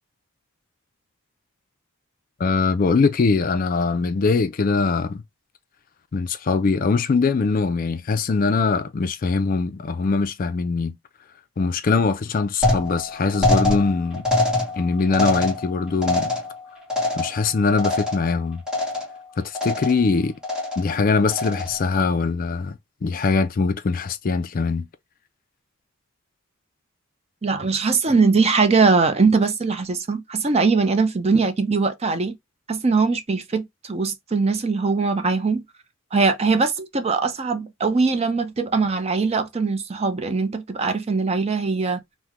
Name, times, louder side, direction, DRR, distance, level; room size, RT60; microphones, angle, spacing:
voice 1, 2.4-5.2 6.1-11.0 11.6-14.2 14.8-16.3 17.2-18.6 19.4-20.3 20.8-24.9, left 4 dB, 45° left, 0.4 m, -22 dB
sound 1, 12.6-18.4 18.7-19.2 19.5-20.1 20.4-21.0 21.3-21.9, left 2 dB, 5° right, 1.1 m, -24 dB
voice 2, 27.4-32.4 32.7-35.6 36.1-42.0, right 4 dB, 30° right, 0.5 m, -21 dB
3.5 x 2.1 x 2.9 m
head